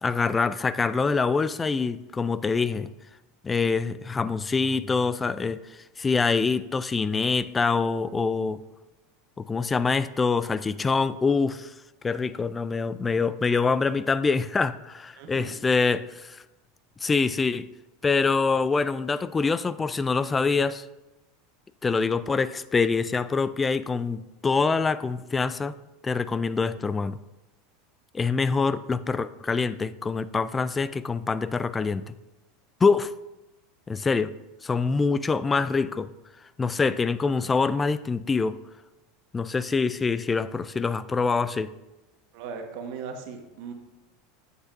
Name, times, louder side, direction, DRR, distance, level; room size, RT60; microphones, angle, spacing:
voice 1, 0.0-2.9 3.4-5.6 6.0-8.6 9.4-11.7 12.0-16.4 17.0-17.7 18.0-20.9 21.8-25.7 26.0-27.2 28.1-32.1 32.8-33.1 33.9-34.3 34.6-36.1 36.6-38.6 39.3-41.7, left 4 dB, 15° left, 16 dB, 0.3 m, -25 dB
voice 2, 15.1-15.6 42.3-43.7, right 6 dB, 65° right, 4 dB, 1.3 m, -38 dB
8.6 x 8.1 x 2.6 m, 1.0 s
supercardioid pair, 120°, 0 cm